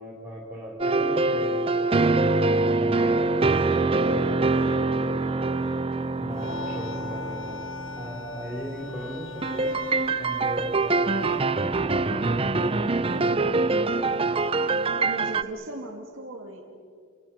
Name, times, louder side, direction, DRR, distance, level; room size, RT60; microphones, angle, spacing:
voice 1, 0.0-2.2 2.6-5.8 6.2-7.6 8.0-9.8 10.2-13.8, equal, 5° right, -4 dB, 3.5 m, -37 dB
sound 1, 0.8-8.6 9.4-15.4, right 3 dB, 25° right, 0.6 m, -24 dB
sound 2, 6.3-11.5, left 6 dB, 65° left, 1.1 m, -41 dB
voice 2, 15.0-16.6, right 2 dB, 75° right, -2 dB, 2.7 m, -37 dB
29.0 x 24.0 x 6.0 m, 2.1 s
head